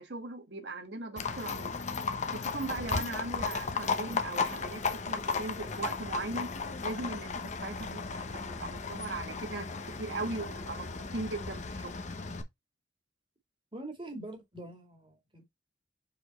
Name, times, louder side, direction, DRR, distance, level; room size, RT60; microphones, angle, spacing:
voice 1, 0.0-1.7 2.3-6.5 6.8-9.7 10.0-10.9 11.1-11.9, right 3 dB, 70° right, 1.6 m, -38 dB
Livestock farm animals working animals, 1.2-12.4, left 4 dB, 40° left, 0.9 m, -35 dB
voice 2, 13.7-15.4, right 2 dB, 30° right, 2.1 m, -44 dB
5.2 x 4.4 x 4.2 m
head